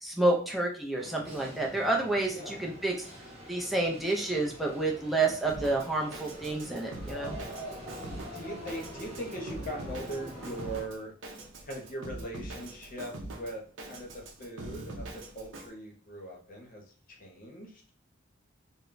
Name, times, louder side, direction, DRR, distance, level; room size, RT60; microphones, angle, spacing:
voice 1, 0.0-2.9 3.5-7.4, right 2 dB, ahead, -2 dB, 0.4 m, -29 dB
sound 1, 1.0-10.8, equal, 30° right, 0.8 m, -45 dB
Drum kit, 5.5-15.7, right 2 dB, 70° right, 0.5 m, -43 dB
voice 2, 8.3-11.1 11.6-17.9, right 1 dB, 45° left, 0 dB, 0.7 m, -41 dB
2.2 x 2.0 x 3.8 m, 0.42 s
head